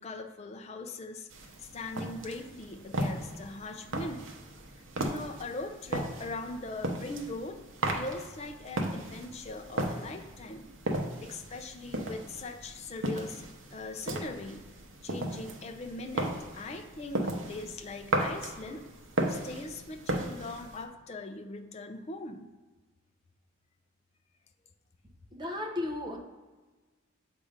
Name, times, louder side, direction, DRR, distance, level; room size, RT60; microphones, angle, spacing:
voice 1, 0.0-4.3 5.0-7.6 7.9-10.7 11.2-14.6 15.0-18.8 19.3-22.5, left 2 dB, 30° left, 6 dB, 0.4 m, -40 dB
sound 1, 1.3-20.8, right 1 dB, 70° right, 0.7 m, -36 dB
voice 2, 25.3-26.2, left 2 dB, 20° right, 1 dB, 0.6 m, -34 dB
7.3 x 2.6 x 5.0 m, 1.3 s
head